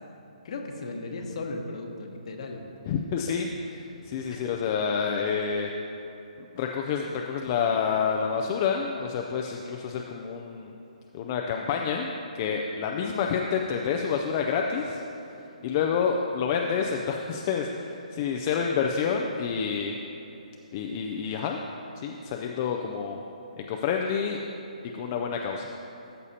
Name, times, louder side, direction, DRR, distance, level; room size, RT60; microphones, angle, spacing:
voice 1, 0.4-2.6 4.3-4.5, left 3 dB, 50° left, 3 dB, 1.0 m, -36 dB
voice 2, 2.9-5.7 6.4-10.7 11.1-15.0 15.4-20.0 20.7-21.6 22.0-23.2 23.6-24.4 24.9-25.7, left 6 dB, 30° left, 1 dB, 0.4 m, -28 dB
13.5 x 6.8 x 2.8 m, 3.0 s
hypercardioid pair, 155°, 4 cm